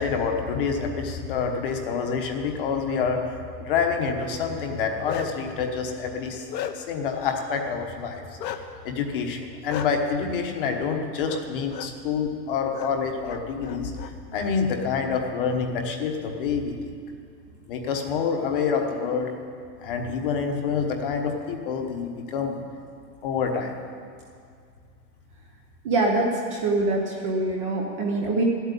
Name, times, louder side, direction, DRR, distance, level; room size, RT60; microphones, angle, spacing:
voice 1, 0.0-6.5 6.7-8.2 8.8-13.9 14.3-16.7 17.7-19.3 19.8-22.6 23.2-23.7, left 5 dB, 30° left, 3 dB, 1.2 m, -27 dB
Bark, 4.7-5.5 6.0-7.0 8.4-8.6 9.7-9.9 11.2-11.4 11.7-11.9 12.7-12.9 13.2-14.1, left 10 dB, 80° left, 1.2 m, -34 dB
voice 2, 25.8-28.4, right 2 dB, 20° right, 0 dB, 0.8 m, -24 dB
14.0 x 8.3 x 9.8 m, 2.3 s
supercardioid pair, 175°, 50 cm